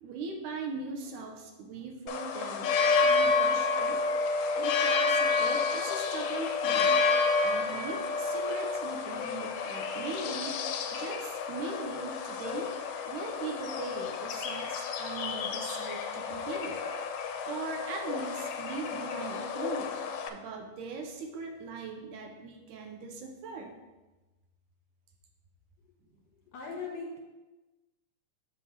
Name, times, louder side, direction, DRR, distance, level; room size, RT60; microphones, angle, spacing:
voice 1, 0.0-2.8 3.0-4.1 4.3-7.0 7.4-10.6 10.9-12.7 13.1-16.8 17.2-20.0 20.3-23.8, right 4 dB, 80° right, 3 dB, 2.1 m, -40 dB
sound 1, 2.1-20.3, left 4 dB, 80° left, 2.0 m, -30 dB
voice 2, 26.5-27.2, left 4 dB, 65° left, -2 dB, 2.2 m, -39 dB
7.8 x 3.3 x 6.2 m, 1.1 s
omnidirectional pair, 3.7 m